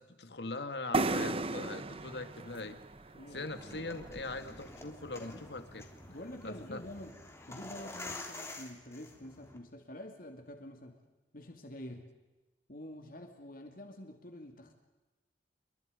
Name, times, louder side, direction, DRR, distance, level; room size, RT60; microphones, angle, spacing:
voice 1, 0.0-2.8 3.3-5.9 6.4-6.8, left 3 dB, 65° left, 9 dB, 2.1 m, -41 dB
sound 1, 0.9-4.6, right 3 dB, 35° right, 0.9 m, -35 dB
voice 2, 3.1-3.6 5.2-5.5 6.1-7.2 7.5-11.0 11.3-12.1 12.7-14.7, left 1 dB, 50° left, 5 dB, 2.6 m, -47 dB
sound 2, 3.4-9.6, left 2 dB, 15° left, 3.5 m, -48 dB
29.5 x 25.0 x 5.2 m, 1.1 s
head